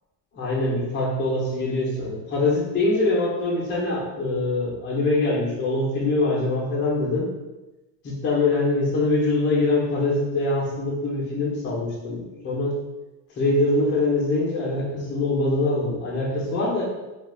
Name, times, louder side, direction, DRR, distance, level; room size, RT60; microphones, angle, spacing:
voice 1, 0.3-7.3 8.0-12.8 13.4-16.8, left 2 dB, 25° left, -5 dB, 0.5 m, -23 dB
3.1 x 2.3 x 2.3 m, 1.0 s
cardioid pair, 155°, 48 cm